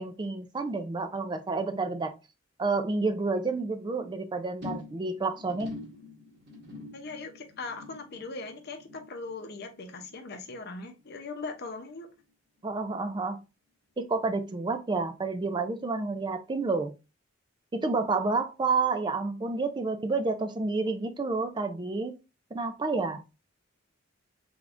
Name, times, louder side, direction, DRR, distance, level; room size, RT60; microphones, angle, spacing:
voice 1, 0.0-2.1 2.6-5.8 12.6-13.4 14.0-16.9 17.7-22.1 22.5-23.2, right 3 dB, 25° right, 0.4 m, -29 dB
sound 1, 4.6-11.2 11.5-11.9 12.2-12.3, left 3 dB, 60° right, 1.2 m, -46 dB
voice 2, 6.9-12.1, left 3 dB, 55° left, 0.7 m, -40 dB
3.6 x 3.5 x 2.5 m
head